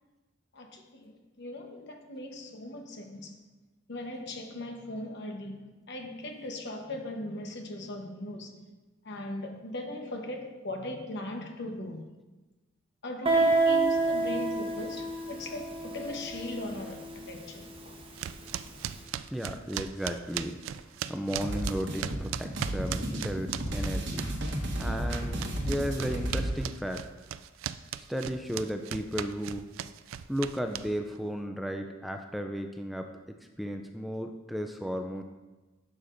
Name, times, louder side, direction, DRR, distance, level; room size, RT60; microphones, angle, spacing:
voice 1, 0.5-3.4 3.9-8.6 9.0-12.1 13.0-18.0, left 1 dB, 60° left, 1.0 m, -39 dB
Guitar, 13.3-18.7, right 3 dB, 30° right, 1.0 m, -29 dB
sound 1, 18.2-24.5 24.8-31.2, right 10 dB, 90° right, 0.3 m, -38 dB
voice 2, 19.3-20.6 21.1-24.2 24.8-27.0 28.1-29.7 30.3-33.1 33.6-35.2, equal, ahead, 0.3 m, -34 dB
sound 2, 21.4-26.6, right 1 dB, 65° right, 1.1 m, -33 dB
11.0 x 6.6 x 2.6 m
head